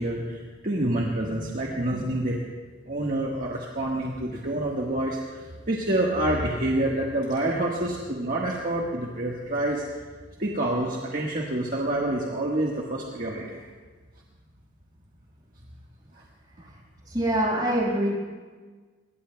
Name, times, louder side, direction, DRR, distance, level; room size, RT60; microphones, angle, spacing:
voice 1, 0.0-2.4 2.9-5.4 5.7-9.8 10.4-13.6 16.6-16.7, right 1 dB, 45° right, -3 dB, 1.5 m, -27 dB
voice 2, 17.1-18.1, right 1 dB, 20° right, -5 dB, 5.5 m, -24 dB
22.5 x 21.5 x 2.3 m, 1.5 s
head